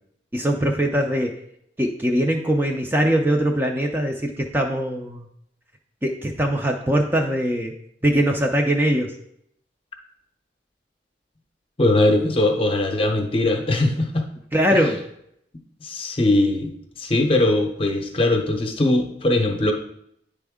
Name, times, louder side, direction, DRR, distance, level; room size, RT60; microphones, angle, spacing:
voice 1, 0.3-1.3 1.8-5.3 6.0-7.7 8.0-9.1 14.5-15.0, right 1 dB, 10° right, 2 dB, 0.4 m, -21 dB
voice 2, 11.8-14.3 14.7-14.8 15.8-16.7 17.0-19.7, left 2 dB, 30° left, 4 dB, 0.7 m, -20 dB
9.2 x 3.5 x 3.6 m, 0.72 s
head